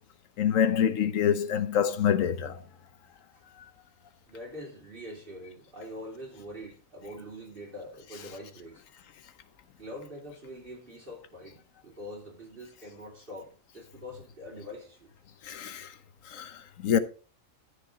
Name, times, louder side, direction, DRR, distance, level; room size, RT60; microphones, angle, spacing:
voice 1, 0.4-2.6 15.5-15.9 16.3-16.5 16.8-17.0, left 8 dB, 85° left, 1.2 m, -25 dB
voice 2, 4.3-8.8 9.8-15.1, equal, 40° right, 3.8 m, -44 dB
13.5 x 5.2 x 4.0 m
omnidirectional pair, 1.3 m